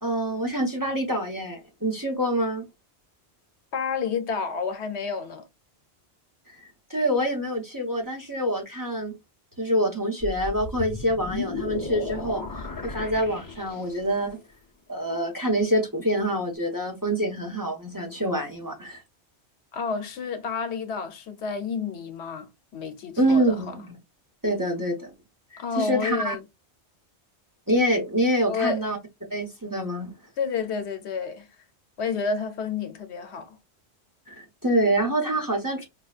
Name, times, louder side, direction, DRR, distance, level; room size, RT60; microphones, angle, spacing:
voice 1, 0.0-2.7 6.6-9.1 9.6-14.4 14.9-19.0 23.2-23.9 24.4-25.1 25.5-26.4 27.7-29.0 29.3-30.1 34.3-35.9, right 1 dB, 20° right, 0.8 m, -26 dB
voice 2, 3.7-5.5 19.7-23.7 25.6-26.4 28.5-28.9 30.4-31.5 32.0-33.6, left 5 dB, 75° left, 1.0 m, -30 dB
sound 1, 10.2-14.2, left 4 dB, 25° left, 0.5 m, -34 dB
4.8 x 2.2 x 2.4 m
omnidirectional pair, 1.1 m